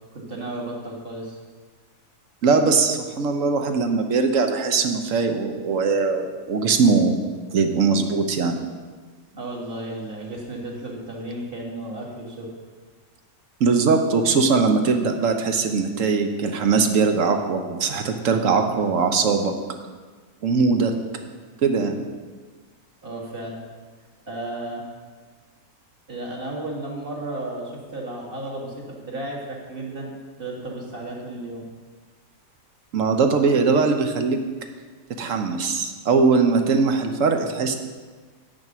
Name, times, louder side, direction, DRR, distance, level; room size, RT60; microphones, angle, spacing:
voice 1, 0.1-1.4 9.3-12.5 23.0-23.6 24.3-24.8 26.1-30.1 30.4-31.6, right 1 dB, 40° right, -1 dB, 1.9 m, -33 dB
voice 2, 2.4-7.2 7.5-8.6 13.6-19.5 20.4-20.9 21.6-22.0 32.9-34.4 35.2-37.8, right 4 dB, 65° right, 6 dB, 1.2 m, -21 dB
8.8 x 6.5 x 6.1 m, 1.4 s
omnidirectional pair, 1.6 m